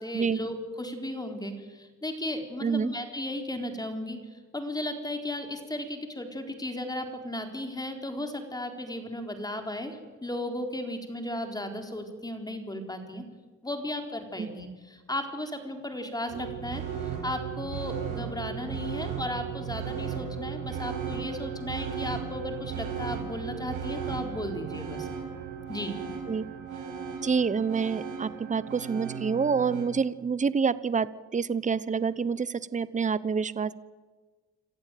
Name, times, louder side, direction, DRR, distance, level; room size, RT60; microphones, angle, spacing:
voice 1, 0.0-4.2 4.5-13.2 13.6-25.1 25.7-25.9, left 1 dB, 15° left, 5 dB, 4.2 m, -35 dB
sound 1, 16.3-29.8, right 7 dB, 80° right, 7.2 m, -36 dB
voice 2, 27.2-33.8, right 5 dB, 25° right, 17 dB, 0.9 m, -27 dB
27.0 x 15.0 x 9.2 m, 1.4 s
cardioid pair, 90°, 30 cm